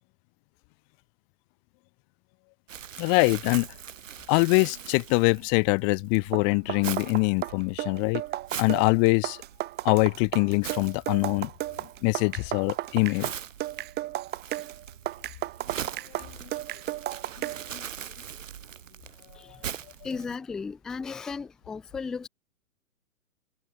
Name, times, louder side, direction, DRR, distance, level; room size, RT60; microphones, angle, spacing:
Crumpling crinkling, 2.7-20.4, right 9 dB, 65° right, 2.8 m, -42 dB
voice 1, 3.0-3.7 4.3-8.2 8.6-9.4 9.8-11.5 12.0-13.3 17.4-17.8, left 40 dB or more, 30° left, 1.5 m, -24 dB
sound 1, 6.1-17.7, right 15 dB, 25° right, 4.4 m, -34 dB
voice 2, 20.0-22.3, left 5 dB, ahead, 0.4 m, -35 dB
hypercardioid pair, 130°, 41 cm